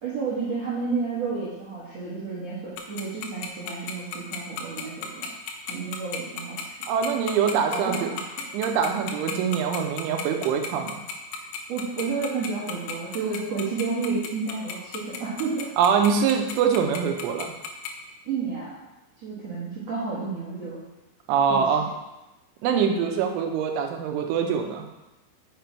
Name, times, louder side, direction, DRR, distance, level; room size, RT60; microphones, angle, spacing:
voice 1, 0.0-5.3 5.7-6.8 7.7-8.2 11.7-15.7 18.2-18.8 19.2-20.8 21.5-21.6, right 4 dB, 60° right, -9 dB, 1.8 m, -31 dB
Tick-tock, 2.8-17.9, left 8 dB, 85° left, 3.1 m, -33 dB
voice 2, 6.9-8.1 8.5-11.0 15.8-17.5 21.3-21.9 22.6-24.8, right 7 dB, 85° right, 3 dB, 3.2 m, -24 dB
6.7 x 6.1 x 4.6 m, 0.99 s
omnidirectional pair, 5.5 m